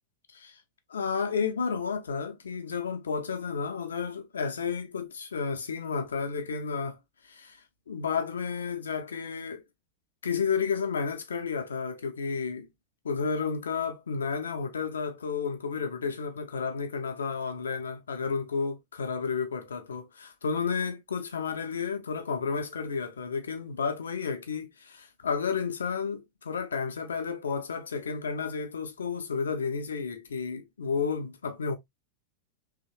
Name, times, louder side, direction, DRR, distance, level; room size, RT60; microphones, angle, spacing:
voice 1, 0.9-7.0 7.3-7.6 7.9-9.6 10.2-12.7 13.0-31.8, left 5 dB, 70° left, 0.5 m, -32 dB
3.0 x 2.1 x 2.7 m
figure-of-eight pair, 90°, 0 cm